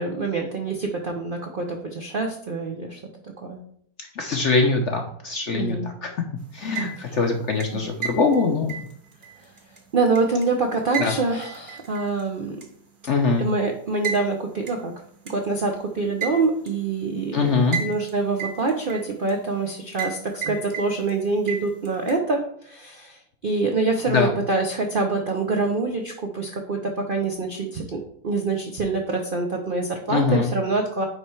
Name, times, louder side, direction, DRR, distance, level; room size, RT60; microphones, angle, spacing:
voice 1, 0.0-3.0 3.4-3.6 5.5-5.9 7.0-7.2 7.7-7.8 9.9-12.6 13.4-14.9 15.3-17.5 17.8-31.1, right 3 dB, 60° right, 2 dB, 0.5 m, -25 dB
voice 2, 4.2-6.2 6.5-8.9 11.0-11.2 13.1-13.4 17.3-17.8 24.1-24.3 30.1-30.5, left 4 dB, 60° left, 3 dB, 0.8 m, -22 dB
sound 1, 6.5-7.2 7.6-10.5 10.9-12.2 12.6-12.7 14.0-14.2 14.7-14.8 15.3-15.4 16.2-16.7 17.7-18.1 18.4-19.3 20.0-20.2 20.4-21.1 21.5-22.2, right 6 dB, 40° right, 0.8 m, -32 dB
9.2 x 3.2 x 4.4 m, 0.66 s
omnidirectional pair, 1.9 m